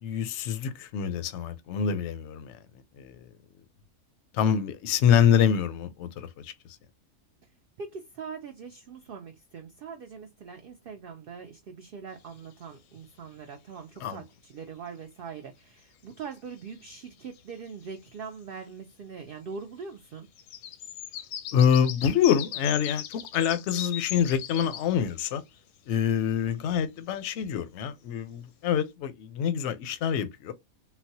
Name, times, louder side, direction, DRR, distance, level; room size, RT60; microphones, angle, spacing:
voice 1, 0.0-2.6 3.0-3.3 4.3-6.5 14.0-14.2 21.5-25.4 25.9-30.5, left 8 dB, 65° left, 0.7 m, -26 dB
voice 2, 7.8-20.3, right 5 dB, 75° right, 0.5 m, -42 dB
sound 1, 12.3-12.4 16.8-16.9 17.3-17.9 20.4-25.3 25.8-25.9, left 11 dB, 85° left, 1.0 m, -38 dB
3.9 x 2.1 x 2.6 m
omnidirectional pair, 1.5 m